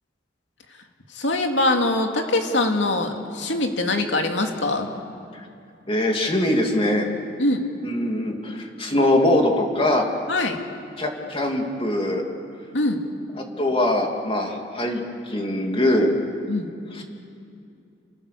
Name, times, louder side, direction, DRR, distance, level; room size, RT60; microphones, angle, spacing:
voice 1, 1.1-4.9 7.4-7.6 10.3-10.6 12.7-13.0 16.5-16.7, left 2 dB, 85° left, 3 dB, 2.6 m, -23 dB
voice 2, 5.9-7.1 7.8-10.0 11.0-12.2 13.6-16.1 16.9-17.0, left 1 dB, 30° left, 2 dB, 2.8 m, -22 dB
29.0 x 24.5 x 6.8 m, 2.5 s
head